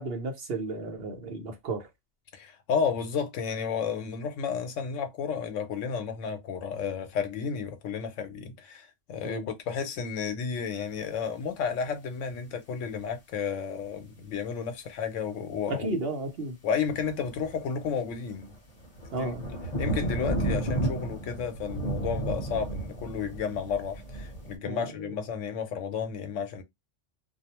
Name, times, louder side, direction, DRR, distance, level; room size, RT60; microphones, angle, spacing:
voice 1, 0.0-1.9 9.2-9.4 15.7-16.6 19.1-19.4 24.6-24.8, right 2 dB, 55° right, 0.9 m, -33 dB
voice 2, 2.3-16.0 16.6-18.6 19.1-19.3 19.8-26.6, left 6 dB, 90° left, 1.0 m, -32 dB
sound 1, 16.9-24.6, right 2 dB, 40° left, 0.8 m, -33 dB
2.6 x 2.0 x 2.8 m
omnidirectional pair, 1.2 m